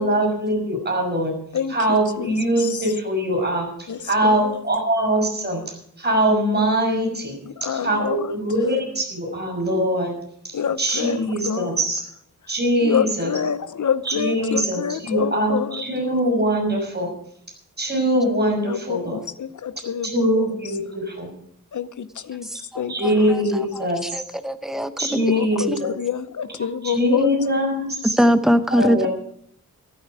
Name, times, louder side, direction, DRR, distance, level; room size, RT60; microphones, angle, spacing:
voice 1, 0.0-1.3 1.7-7.3 7.6-10.2 10.4-12.0 12.5-13.3 14.0-17.1 17.8-19.2 20.0-21.3 22.9-24.0 25.0-25.9 26.8-28.2 28.7-29.1, right 1 dB, 30° right, 6.0 m, -22 dB
voice 2, 1.5-2.8 3.9-4.6 7.4-8.3 10.5-11.8 12.8-15.8 18.6-20.5 21.7-22.5 22.7-23.3 23.6-23.9 25.1-27.3, left 8 dB, 60° left, 0.8 m, -28 dB
voice 3, 22.4-23.4 23.7-25.3 25.7-25.8 28.2-29.1, equal, ahead, 0.8 m, -22 dB
14.5 x 13.0 x 4.9 m
wide cardioid pair, 135°, 34 cm